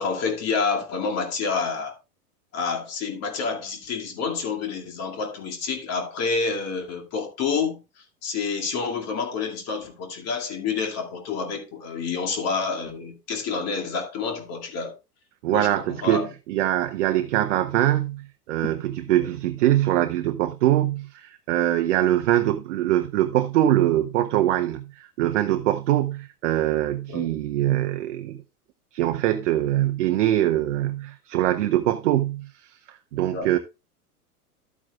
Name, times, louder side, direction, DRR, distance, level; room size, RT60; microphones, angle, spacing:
voice 1, 0.0-2.0 2.5-7.8 8.2-15.0 15.5-16.3 19.1-19.3 22.0-22.1 27.1-27.3 33.3-33.5, left 5 dB, 35° left, 2.4 m, -28 dB
voice 2, 15.4-28.4 28.9-33.6, right 13 dB, 50° right, 0.8 m, -23 dB
12.5 x 8.7 x 2.4 m
figure-of-eight pair, 95°, 46 cm